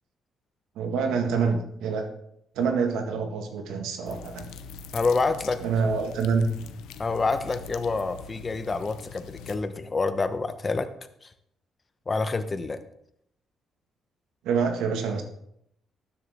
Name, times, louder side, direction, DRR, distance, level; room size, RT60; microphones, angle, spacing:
voice 1, 0.8-2.1 2.6-4.5 5.6-6.5 14.4-15.2, right 5 dB, 90° right, 5 dB, 1.7 m, -26 dB
sound 1, 4.1-9.6, left 7 dB, 90° left, 0.7 m, -43 dB
voice 2, 4.9-5.6 7.0-10.9 11.2-11.3 12.1-12.8, left 3 dB, 30° left, 10 dB, 1.1 m, -27 dB
13.0 x 10.0 x 3.6 m, 0.75 s
cardioid pair, 90°, 0 cm